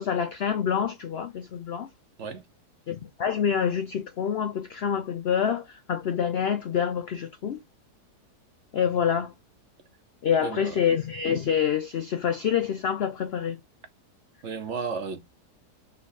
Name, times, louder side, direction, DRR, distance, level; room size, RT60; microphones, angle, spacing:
voice 1, 0.0-1.9 2.9-7.6 8.7-9.3 10.2-13.6, left 8 dB, 85° left, 0.5 m, -27 dB
voice 2, 10.4-10.8 14.4-15.2, right 5 dB, 55° right, 1.0 m, -33 dB
4.1 x 3.2 x 4.0 m
omnidirectional pair, 1.7 m